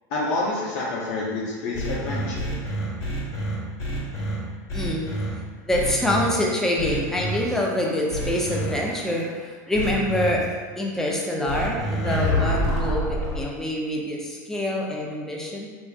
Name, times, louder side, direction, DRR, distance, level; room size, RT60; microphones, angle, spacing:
voice 1, 0.1-2.5, left 2 dB, 55° left, -6 dB, 0.6 m, -28 dB
sound 1, 1.7-4.4 4.7-5.3 5.7-6.3 6.8-7.4 8.1-8.7 9.7-10.3 11.5-13.4, equal, 30° left, 1.0 m, -27 dB
voice 2, 4.7-5.1 5.7-10.5 10.8-15.7, left 1 dB, 5° left, -2 dB, 0.4 m, -25 dB
3.2 x 2.6 x 2.4 m, 1.5 s
supercardioid pair, 140°, 10 cm